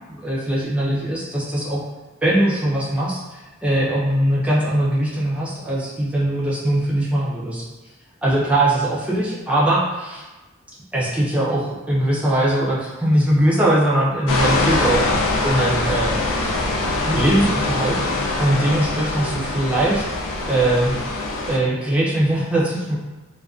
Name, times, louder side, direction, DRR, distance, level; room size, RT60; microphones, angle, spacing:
voice 1, 0.2-1.8 2.2-7.6 8.2-10.2 10.9-15.0 15.4-16.2 17.1-18.0 18.4-20.0 20.5-21.0 21.5-23.0, right 1 dB, 5° right, -7 dB, 0.4 m, -21 dB
sound 1, 14.3-21.6, left 2 dB, 85° left, 0.4 m, -23 dB
2.4 x 2.2 x 2.3 m, 1.1 s
head